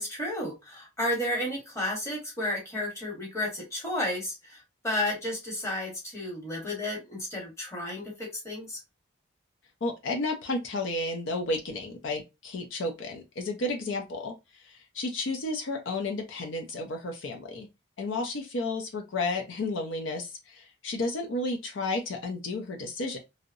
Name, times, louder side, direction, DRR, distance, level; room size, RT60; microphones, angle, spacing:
voice 1, 0.0-4.6 4.8-8.8, left 1 dB, 15° left, 0.9 m, -32 dB
voice 2, 9.8-14.3 14.6-17.7 18.0-23.2, left 2 dB, 65° left, 0.5 m, -32 dB
2.7 x 2.0 x 2.4 m
head